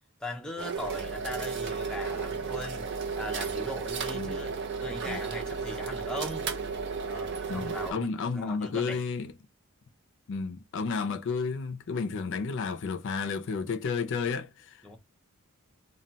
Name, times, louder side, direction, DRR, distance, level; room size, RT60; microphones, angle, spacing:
voice 1, 0.2-4.5 4.8-6.5 7.1-9.0 14.8-15.0, left 1 dB, 5° left, 0.5 m, -39 dB
sound 1, 0.6-7.9, right 5 dB, 55° right, 0.6 m, -34 dB
voice 2, 7.5-9.3 10.3-14.8, left 5 dB, 60° left, 0.4 m, -32 dB
2.2 x 2.1 x 3.9 m
head